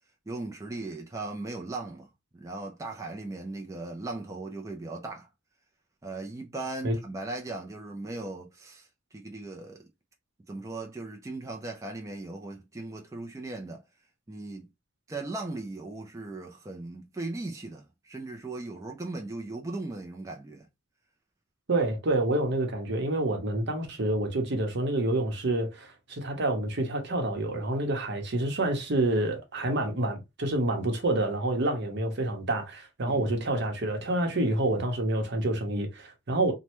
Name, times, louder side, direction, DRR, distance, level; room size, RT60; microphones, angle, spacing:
voice 1, 0.3-5.3 6.0-9.8 10.5-13.8 14.3-14.7 15.1-20.7 33.0-33.3, right 2 dB, 15° right, 0.4 m, -38 dB
voice 2, 21.7-36.5, right 2 dB, 60° right, 0.8 m, -28 dB
3.1 x 2.1 x 2.9 m
head